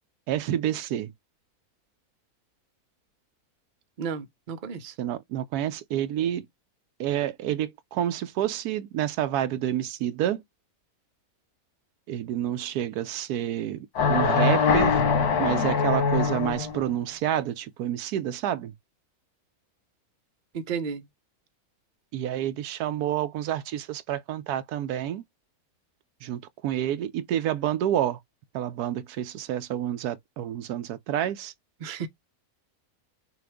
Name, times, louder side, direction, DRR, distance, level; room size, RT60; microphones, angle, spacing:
voice 1, 0.3-1.1 5.0-6.5 7.0-10.4 12.1-15.0 15.4-18.7 22.1-25.2 26.2-28.2 28.5-31.5, right 11 dB, 85° right, 1.1 m, -29 dB
voice 2, 4.0-4.9 20.5-21.1 31.8-32.1, right 6 dB, 45° right, 0.7 m, -33 dB
sound 1, 13.9-16.8, left 5 dB, 80° left, 1.6 m, -23 dB
5.9 x 2.4 x 3.5 m
omnidirectional pair, 1.6 m